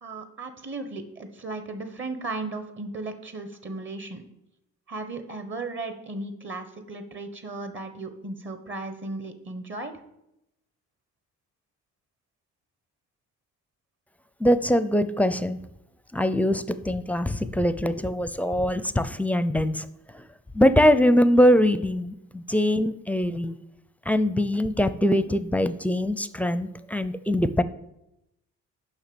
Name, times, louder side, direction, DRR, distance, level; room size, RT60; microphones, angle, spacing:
voice 1, 0.0-4.2 4.9-9.9, right 3 dB, 40° right, 8 dB, 1.2 m, -36 dB
voice 2, 14.4-15.6 16.1-19.9 20.1-20.2 20.5-23.5 24.1-27.6, equal, 5° left, 13 dB, 0.5 m, -22 dB
7.2 x 5.6 x 6.9 m, 0.84 s
cardioid pair, 90°, 30 cm